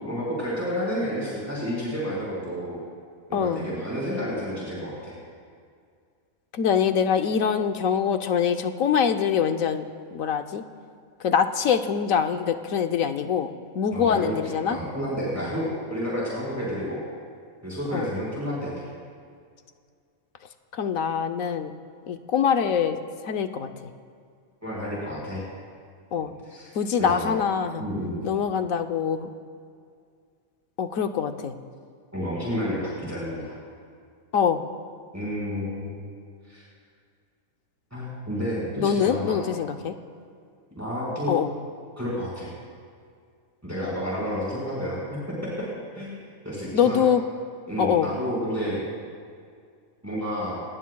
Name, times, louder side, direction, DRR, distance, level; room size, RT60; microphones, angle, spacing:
voice 1, 0.0-2.8 3.3-5.1 13.9-17.0 17.6-18.7 24.6-25.4 26.2-26.7 26.9-27.4 27.8-28.3 32.1-33.6 35.1-36.1 36.5-36.6 37.9-39.4 40.7-41.3 42.0-42.5 43.6-45.7 45.9-47.0 47.7-48.8 50.0-50.6, equal, 10° right, -7 dB, 4.9 m, -30 dB
voice 2, 3.3-3.6 6.5-9.8 10.1-10.6 11.2-13.5 13.7-14.8 17.9-18.1 20.7-21.7 22.1-23.0 23.2-23.7 26.1-26.3 26.7-27.8 28.2-29.3 30.8-31.5 34.3-34.6 38.8-39.9 41.3-41.5 46.7-47.2 47.8-48.1, left 7 dB, 75° left, 7 dB, 1.2 m, -24 dB
27.0 x 19.5 x 2.3 m, 2.2 s
omnidirectional pair, 1.4 m